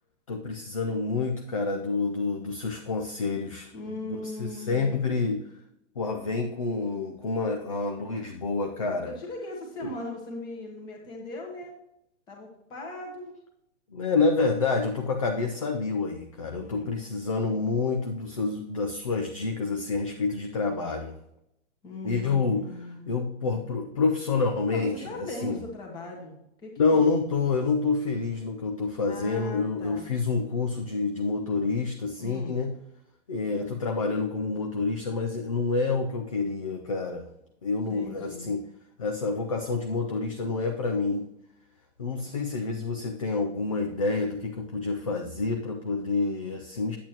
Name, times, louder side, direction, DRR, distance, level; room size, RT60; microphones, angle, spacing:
voice 1, 0.3-5.4 6.0-9.1 9.8-9.9 13.9-21.2 22.0-22.7 23.1-25.6 26.8-32.8 33.3-37.3 37.6-38.7 39.0-41.3 42.0-47.0, left 4 dB, 30° left, 3 dB, 0.4 m, -28 dB
voice 2, 3.7-5.0 9.0-11.7 12.3-13.3 16.6-16.9 21.8-23.1 24.7-27.0 29.0-30.1 32.2-32.6 37.9-38.5, left 2 dB, 10° left, 0 dB, 1.2 m, -39 dB
8.9 x 8.4 x 2.8 m, 0.81 s
hypercardioid pair, 175°, 38 cm